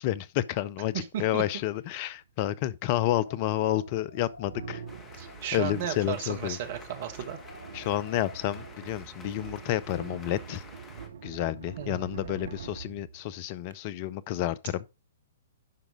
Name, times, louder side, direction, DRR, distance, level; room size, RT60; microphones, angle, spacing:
voice 1, 0.0-4.8 5.5-6.6 7.7-10.6 11.2-14.8, left 13 dB, 40° left, 0.5 m, -30 dB
voice 2, 0.9-1.4 5.2-7.4 11.8-12.1, right 9 dB, 45° right, 1.5 m, -34 dB
sound 1, 2.1-2.2 3.1-13.7, right 7 dB, 60° right, 0.8 m, -45 dB
sound 2, 3.2-8.9, left 3 dB, 60° left, 1.2 m, -52 dB
sound 3, 4.9-11.1, left 4 dB, 15° left, 1.4 m, -50 dB
11.0 x 5.0 x 3.6 m
figure-of-eight pair, 115°, 0 cm